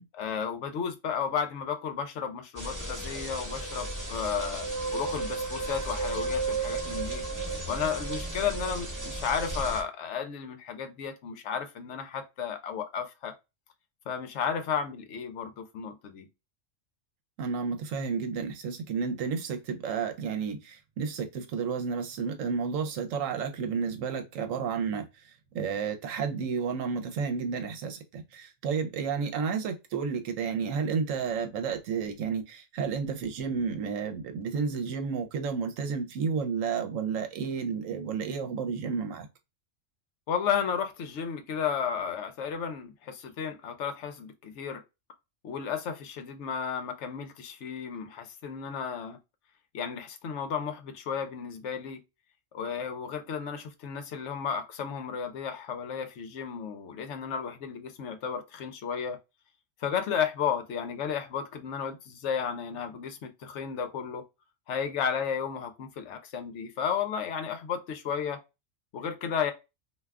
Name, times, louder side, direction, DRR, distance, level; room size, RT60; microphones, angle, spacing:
voice 1, 0.2-7.2 7.7-13.3 14.1-16.3 40.3-44.8 45.4-49.2 49.7-52.0 52.5-59.2 59.8-64.2 64.7-68.4 68.9-69.5, left 7 dB, 70° left, 0.9 m, -33 dB
sound 1, 2.6-9.8, right 3 dB, 15° right, 1.0 m, -33 dB
voice 2, 17.4-25.1 25.5-39.3, right 5 dB, 80° right, 1.0 m, -31 dB
2.5 x 2.3 x 3.3 m
omnidirectional pair, 1.3 m